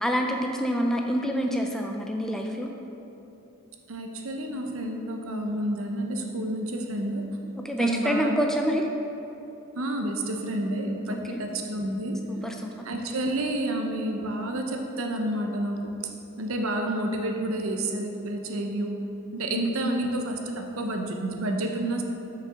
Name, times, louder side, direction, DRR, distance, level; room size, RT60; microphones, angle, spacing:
voice 1, 0.0-2.7 7.6-8.8 11.3-11.4 12.3-12.7 19.5-19.7, equal, ahead, 2 dB, 0.4 m, -27 dB
voice 2, 3.9-7.3 7.8-8.4 9.8-12.2 12.8-15.8 16.4-19.0 19.3-22.0, right 1 dB, 70° right, 3 dB, 0.7 m, -29 dB
6.0 x 5.6 x 5.0 m, 2.9 s
head